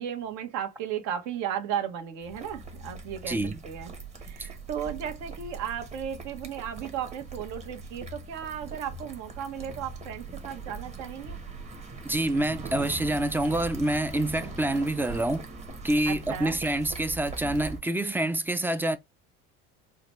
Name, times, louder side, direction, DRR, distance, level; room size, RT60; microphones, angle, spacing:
voice 1, 0.0-3.4 3.6-3.9 4.2-11.4 14.4-14.5 16.0-16.6, right 9 dB, 70° right, 1.0 m, -35 dB
sound 1, 2.2-17.8, right 3 dB, 25° right, 0.9 m, -41 dB
voice 2, 3.3-3.6 12.0-15.5 15.8-19.0, right 1 dB, 5° right, 0.4 m, -27 dB
4.8 x 2.2 x 3.0 m
supercardioid pair, 110°, 30 cm